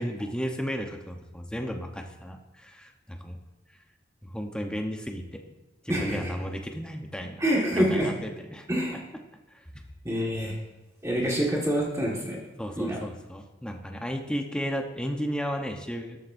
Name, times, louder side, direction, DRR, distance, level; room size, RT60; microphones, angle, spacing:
voice 1, 0.0-3.4 4.2-5.4 5.8-7.4 7.8-8.7 9.5-9.8 12.6-16.2, equal, 5° left, 3 dB, 1.0 m, -34 dB
voice 2, 5.9-6.3 7.4-8.1 8.7-9.0 10.1-10.6 11.0-12.4 12.8-13.0, equal, 15° right, -3 dB, 1.8 m, -26 dB
13.0 x 12.0 x 2.7 m, 1.1 s
head